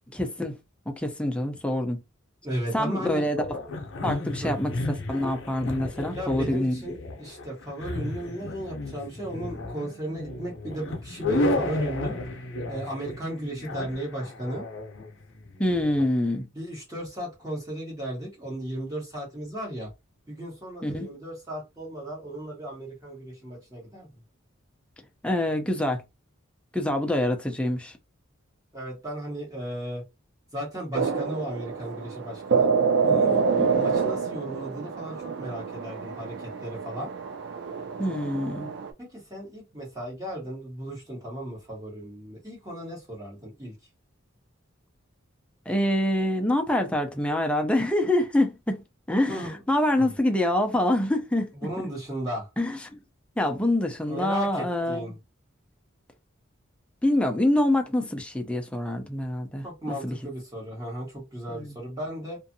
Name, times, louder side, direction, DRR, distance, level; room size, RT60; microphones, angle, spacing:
voice 1, 0.1-0.5 0.9-2.0 2.7-3.4 4.0-6.8 15.6-16.5 20.8-21.1 25.2-26.0 26.7-27.9 33.6-33.7 38.0-38.7 45.7-48.8 49.1-51.5 52.6-53.0 53.4-55.1 57.0-60.2 61.5-61.7, left 1 dB, 5° left, 0.4 m, -26 dB
voice 2, 2.4-3.3 4.4-4.5 6.0-12.2 12.7-14.6 16.5-19.9 20.3-24.1 28.7-30.0 30.5-32.7 33.0-33.4 33.8-37.1 39.0-43.7 49.3-49.6 50.0-50.1 51.5-52.5 54.1-55.1 59.6-62.4, right 1 dB, 15° right, 1.1 m, -35 dB
sound 1, 3.4-16.0, left 2 dB, 65° left, 0.7 m, -33 dB
sound 2, 30.9-38.9, right 5 dB, 60° right, 0.5 m, -27 dB
2.6 x 2.4 x 2.6 m
head